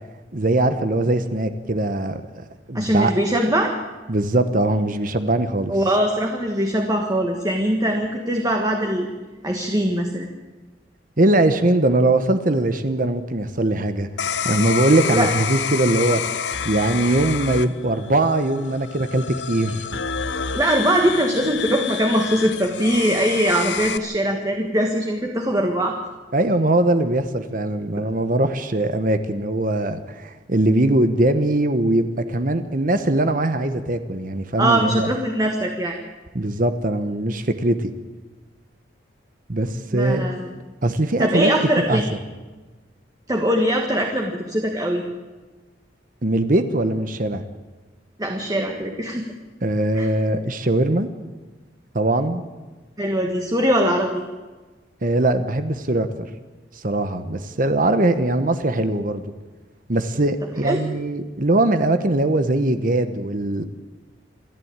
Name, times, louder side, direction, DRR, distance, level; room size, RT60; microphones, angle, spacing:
voice 1, 0.3-3.1 4.1-5.7 11.2-14.1 14.4-20.0 26.3-35.1 36.3-37.9 39.5-40.2 40.8-41.5 41.8-42.0 46.2-47.5 49.6-51.1 51.9-52.4 55.0-56.1 56.8-59.2 59.9-63.6, right 2 dB, 45° right, 10 dB, 1.0 m, -21 dB
voice 2, 2.7-3.7 5.7-9.1 9.4-10.3 15.0-15.3 20.5-26.0 28.0-28.1 34.6-36.0 39.9-40.5 41.2-42.1 43.3-45.0 48.2-49.3 50.0-50.1 53.0-54.2 60.6-60.8, right 1 dB, 20° right, 2 dB, 1.6 m, -21 dB
sound 1, 14.2-24.0, left 7 dB, 70° left, 0.9 m, -28 dB
27.5 x 11.0 x 8.8 m, 1.3 s
head